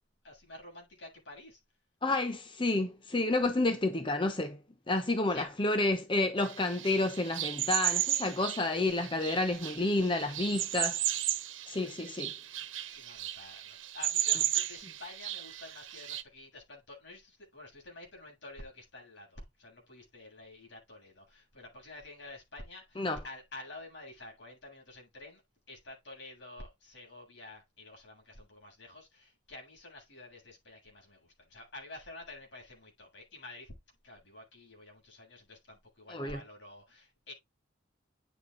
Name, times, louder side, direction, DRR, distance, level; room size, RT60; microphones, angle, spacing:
voice 1, 0.2-1.6 5.3-5.5 12.9-25.4 25.7-33.8 34.0-37.3, left 2 dB, 60° left, 7.8 m, -49 dB
voice 2, 2.0-4.6 4.9-11.0 11.7-12.3 23.0-23.2 36.1-36.4, left 2 dB, 25° left, 0.9 m, -30 dB
sound 1, 6.4-16.2, right 11 dB, 75° right, 1.2 m, -34 dB
9.9 x 7.3 x 3.9 m
head